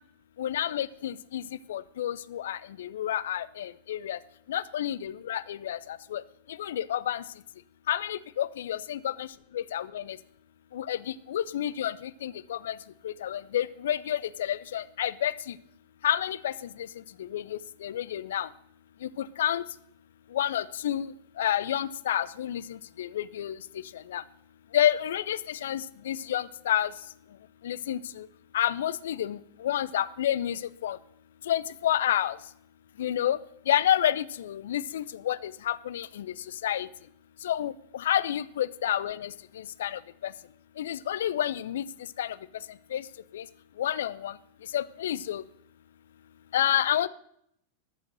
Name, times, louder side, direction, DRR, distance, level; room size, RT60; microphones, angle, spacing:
voice 1, 0.4-1.4 1.7-4.2 4.5-6.2 6.6-7.2 7.9-9.3 9.5-10.2 10.7-12.8 13.0-15.5 16.0-16.5 17.2-18.5 19.2-19.6 20.3-21.1 21.4-23.6 24.1-24.2 24.7-26.9 27.6-28.3 28.5-31.0 31.5-32.4 33.0-33.4 33.7-36.3 36.6-36.9 37.4-39.3 39.8-40.3 40.8-41.8 42.2-42.4 42.9-43.0 43.3-43.4 43.8-44.3 44.7-45.4 46.5-47.1, left 11 dB, 60° left, 17 dB, 0.4 m, -29 dB
13.0 x 6.4 x 6.0 m, 0.70 s
figure-of-eight pair, 90°, 0 cm